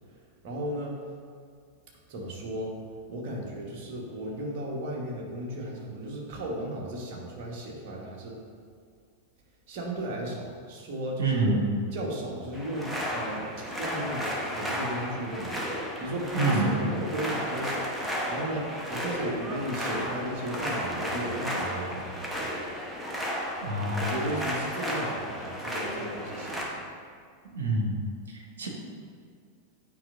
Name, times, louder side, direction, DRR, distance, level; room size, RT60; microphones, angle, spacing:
voice 1, 0.1-1.0 2.1-2.8 3.1-8.4 9.7-11.5 11.9-22.5 24.0-26.9, right 1 dB, 45° right, -2 dB, 1.4 m, -35 dB
voice 2, 11.2-11.6 16.3-16.7 23.6-24.1 27.5-27.9 28.6-28.7, right 2 dB, 70° right, 0 dB, 1.1 m, -26 dB
sound 1, 12.5-26.6, equal, 5° right, 1.0 m, -33 dB
9.2 x 5.0 x 2.6 m, 2.1 s
figure-of-eight pair, 90°, 0 cm